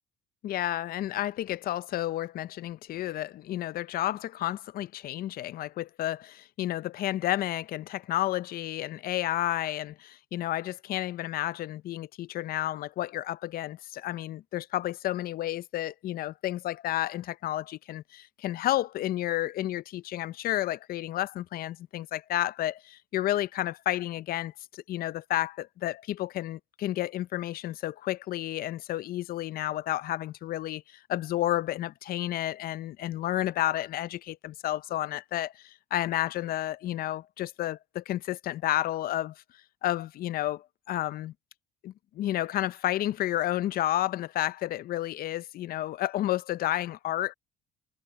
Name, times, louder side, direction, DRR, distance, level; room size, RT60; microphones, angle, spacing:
voice 1, 0.4-39.3 39.8-41.3 41.8-47.3, left 14 dB, 60° left, 0.6 m, -31 dB
cardioid pair, 110°, 17 cm